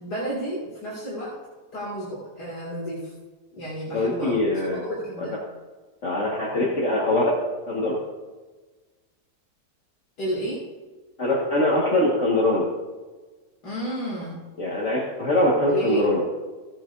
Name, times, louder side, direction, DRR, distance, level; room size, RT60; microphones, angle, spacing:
voice 1, 0.0-1.4 1.7-3.1 3.6-5.4 10.2-10.6 13.6-14.4 15.7-16.0, right 1 dB, 75° left, -7 dB, 2.9 m, -31 dB
voice 2, 3.9-4.8 5.2-5.3 6.0-7.3 7.7-7.9 11.2-12.6 14.6-16.2, left 1 dB, 45° left, -4 dB, 2.0 m, -22 dB
16.0 x 8.7 x 2.6 m, 1.3 s
omnidirectional pair, 1.8 m